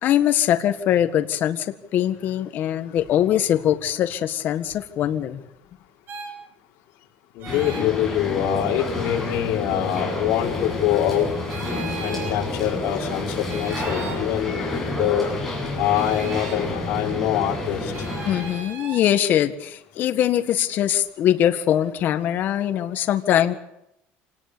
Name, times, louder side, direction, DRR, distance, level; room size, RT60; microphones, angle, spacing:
voice 1, 0.0-1.7 1.9-5.4 18.2-23.5, left 11 dB, 45° left, 8 dB, 1.7 m, -22 dB
sound 1, 6.1-6.3 7.4-7.9 9.9-10.1 11.5-12.4 13.5-14.2 15.9-16.6 17.9-19.0, right 5 dB, 50° right, 5.7 m, -37 dB
voice 2, 7.4-11.3 12.0-15.3 15.8-18.4, left 11 dB, 65° left, -1 dB, 5.2 m, -24 dB
sound 2, 7.4-18.6, left 2 dB, 5° left, 8.0 m, -29 dB
27.0 x 19.0 x 6.9 m, 0.82 s
cardioid pair, 150°, 4 cm